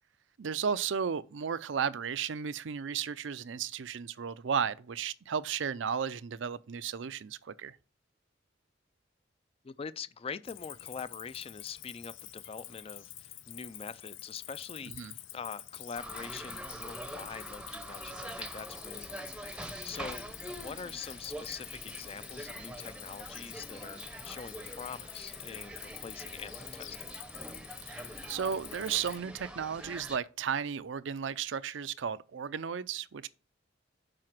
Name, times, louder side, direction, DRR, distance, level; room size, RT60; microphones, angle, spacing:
voice 1, 0.4-7.8 14.9-15.1 27.8-33.3, right 7 dB, 75° right, 0.5 m, -34 dB
voice 2, 9.6-27.0, left 6 dB, 30° left, 0.4 m, -44 dB
Cricket, 10.5-29.2, left 12 dB, 85° left, 0.7 m, -47 dB
sound 1, 15.9-30.2, right 1 dB, 5° right, 0.7 m, -45 dB
7.6 x 4.9 x 5.9 m
head